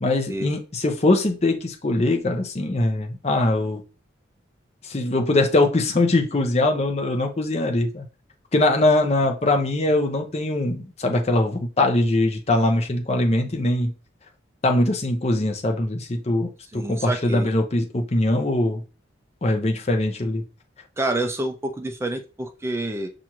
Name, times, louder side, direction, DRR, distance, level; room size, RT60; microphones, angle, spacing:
voice 1, 0.0-3.8 4.9-8.0 8.5-13.9 14.6-18.8 19.4-20.4, left 2 dB, 35° left, 4 dB, 0.6 m, -22 dB
voice 2, 16.7-17.5 21.0-23.1, right 2 dB, 15° right, 6 dB, 0.3 m, -28 dB
5.8 x 2.5 x 2.9 m, 0.34 s
head